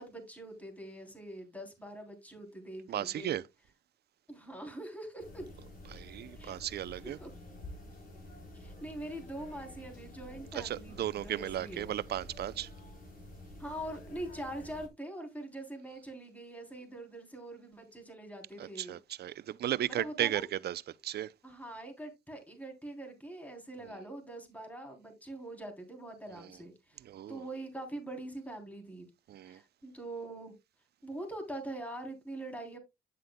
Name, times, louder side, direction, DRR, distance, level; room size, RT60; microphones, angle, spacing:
voice 1, 0.0-3.4 4.3-5.4 6.4-6.5 7.0-7.3 8.5-11.9 13.6-19.0 19.9-20.5 21.4-27.0 27.3-29.1 29.4-30.5 31.0-32.8, right 1 dB, 5° left, 3.2 m, -43 dB
voice 2, 2.9-3.4 5.9-7.2 10.5-12.7 18.6-21.3 23.8-24.0 26.3-26.6 27.0-27.4 29.3-29.6, right 12 dB, 55° right, 0.5 m, -35 dB
sound 1, 5.2-14.9, left 1 dB, 45° left, 3.2 m, -49 dB
9.8 x 7.6 x 2.2 m
cardioid pair, 90°, 20 cm